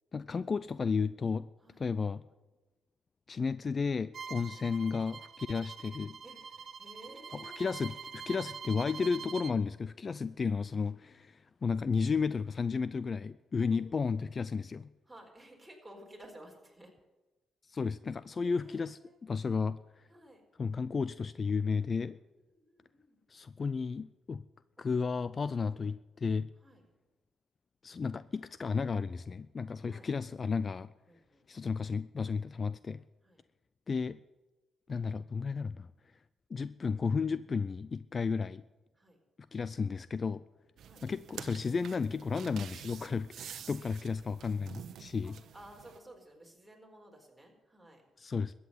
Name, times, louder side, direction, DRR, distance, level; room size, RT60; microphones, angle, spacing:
voice 1, 0.1-1.5 1.8-2.2 3.3-6.2 7.4-14.9 17.6-20.1 20.6-22.2 23.3-24.4 24.8-26.5 27.8-30.9 31.5-33.0 33.9-34.2 34.9-35.9 36.5-38.6 39.5-40.4 41.0-45.3 48.2-48.5, left 5 dB, 35° left, 17 dB, 0.4 m, -33 dB
Bowed string instrument, 4.1-9.6, right 6 dB, 50° right, 0.8 m, -45 dB
voice 2, 6.8-7.7 10.1-10.3 13.7-13.8 15.1-16.9 18.4-19.2 20.1-20.4 21.9-23.2 24.8-24.9 26.6-26.8 29.9-30.4 31.1-31.9 33.2-33.4 38.9-39.2 40.8-41.0 45.2-48.0, right 1 dB, 5° right, 0 dB, 4.5 m, -55 dB
sound 1, 40.8-46.0, right 9 dB, 70° right, 1.0 m, -48 dB
14.0 x 8.7 x 9.4 m, 1.1 s
cardioid pair, 90°, 0 cm